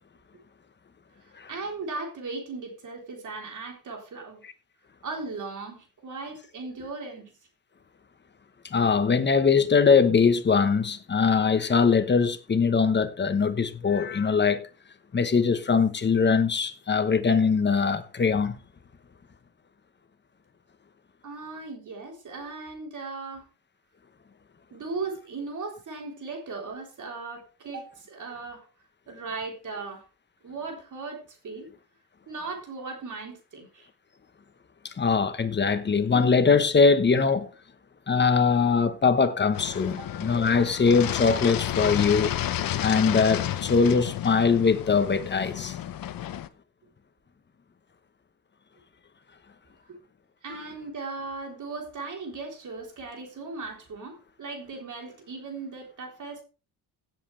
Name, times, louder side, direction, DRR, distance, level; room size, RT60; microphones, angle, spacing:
voice 1, 1.2-4.4 5.0-7.3 21.2-23.5 24.7-28.7 29.1-30.0 30.4-31.7 32.3-33.9 40.0-40.1 50.4-56.4, right 3 dB, 50° right, 3.7 m, -37 dB
voice 2, 8.7-14.6 15.1-18.6 34.8-37.5 38.1-42.3 42.8-45.8, left 5 dB, 30° left, 1.1 m, -22 dB
sound 1, 39.5-46.5, left 11 dB, 60° left, 0.9 m, -31 dB
16.5 x 7.7 x 3.3 m
cardioid pair, 135°, 38 cm